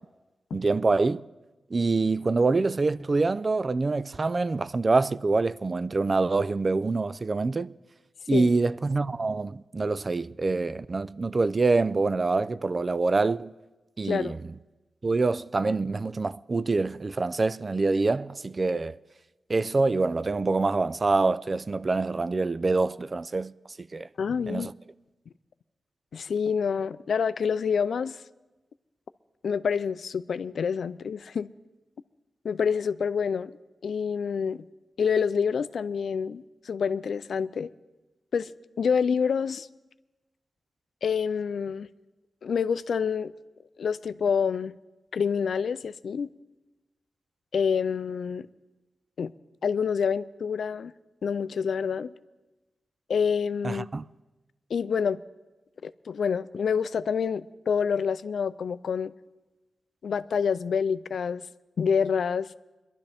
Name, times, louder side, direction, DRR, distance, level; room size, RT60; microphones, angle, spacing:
voice 1, 0.5-1.2 1.7-7.7 8.3-13.5 14.0-14.4 15.0-19.0 19.5-23.5 23.8-24.1 24.5-24.7 53.6-54.0, right 3 dB, 45° right, 0.4 m, -25 dB
voice 2, 24.2-24.7 26.1-28.2 29.4-31.5 32.4-33.6 33.8-34.6 35.0-37.7 38.3-38.5 38.8-39.7 41.0-41.9 42.4-43.3 43.8-44.7 45.1-46.3 47.5-48.5 49.2-49.3 49.6-50.9 51.2-52.1 53.1-53.9 54.7-55.2 55.8-59.1 60.0-61.4 61.8-62.5, left 6 dB, 80° left, 0.4 m, -27 dB
22.0 x 11.5 x 3.4 m
cardioid pair, 50°, 0 cm